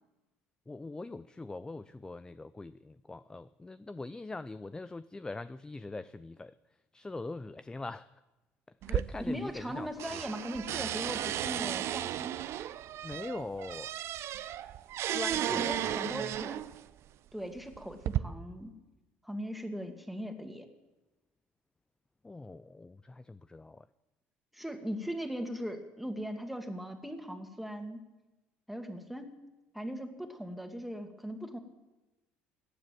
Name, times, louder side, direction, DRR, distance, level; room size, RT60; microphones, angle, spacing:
voice 1, 0.7-8.2 8.8-10.2 13.0-13.9 15.0-16.4 22.2-23.9, left 3 dB, 15° left, 15 dB, 0.4 m, -42 dB
sound 1, 8.8-9.7 10.0-16.8 17.6-18.2, right 12 dB, 60° right, 0.6 m, -34 dB
voice 2, 9.3-12.4 15.2-16.6 17.3-18.7 19.2-20.7 24.5-28.0 28.7-29.4 29.7-31.6, equal, ahead, 5 dB, 2.3 m, -39 dB
15.0 x 9.9 x 9.1 m, 1.1 s
hypercardioid pair, 70°, 5 cm